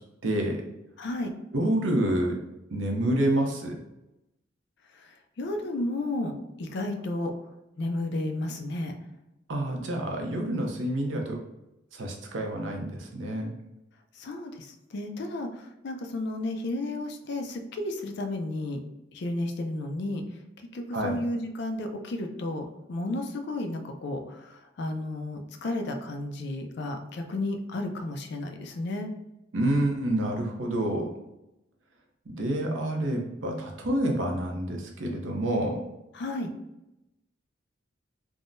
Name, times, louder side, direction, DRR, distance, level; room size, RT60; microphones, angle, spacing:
voice 1, 0.2-0.6 1.5-2.4 2.7-3.8 9.5-11.4 11.9-13.5 20.9-21.2 29.5-31.1 32.3-35.8, right 1 dB, 75° right, 1 dB, 0.7 m, -28 dB
voice 2, 1.0-1.3 4.9-6.3 6.6-7.3 7.8-8.9 14.1-18.8 19.1-20.2 20.7-29.1 36.1-36.5, left 2 dB, 60° left, 5 dB, 0.4 m, -33 dB
3.5 x 2.1 x 2.5 m, 0.93 s
head